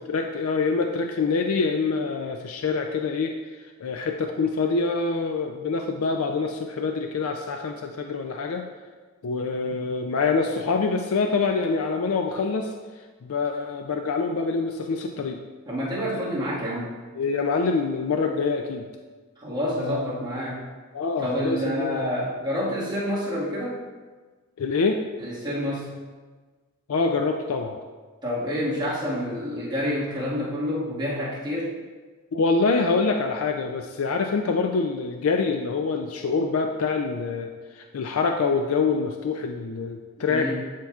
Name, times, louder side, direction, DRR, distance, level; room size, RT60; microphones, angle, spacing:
voice 1, 0.0-3.4 3.8-8.7 9.2-12.7 13.2-15.4 17.2-18.8 19.8-20.1 20.9-22.0 24.6-25.1 26.9-27.8 32.3-37.5 37.8-40.5, left 4 dB, 85° left, 4 dB, 0.4 m, -25 dB
voice 2, 9.6-9.9 15.7-16.9 19.4-20.6 21.2-23.8 25.2-25.9 28.2-31.8 40.2-40.5, equal, 20° right, -8 dB, 1.7 m, -28 dB
11.0 x 4.6 x 2.4 m, 1.4 s
head